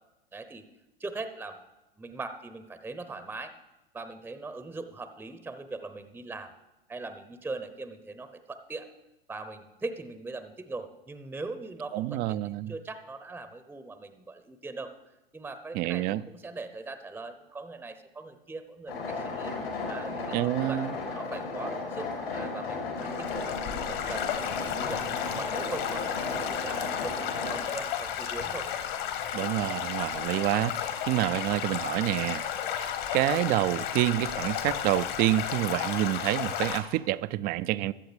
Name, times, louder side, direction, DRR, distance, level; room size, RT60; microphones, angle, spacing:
voice 1, 0.3-0.6 1.0-1.6 2.0-3.5 3.9-6.5 6.9-8.9 9.3-14.9 15.3-19.5 19.9-20.8 21.1-25.1 25.4-28.7, right 3 dB, 5° right, 10 dB, 0.7 m, -40 dB
voice 2, 11.9-12.7 15.7-16.2 20.3-20.9 29.3-37.9, right 15 dB, 30° right, 17 dB, 0.4 m, -28 dB
sound 1, 18.9-27.6, left 3 dB, 75° left, 2.9 m, -34 dB
Stream / Gurgling / Trickle dribble, 23.0-36.8, left 9 dB, 55° left, 1.5 m, -33 dB
21.5 x 7.7 x 3.4 m, 0.98 s
figure-of-eight pair, 85°, 30 cm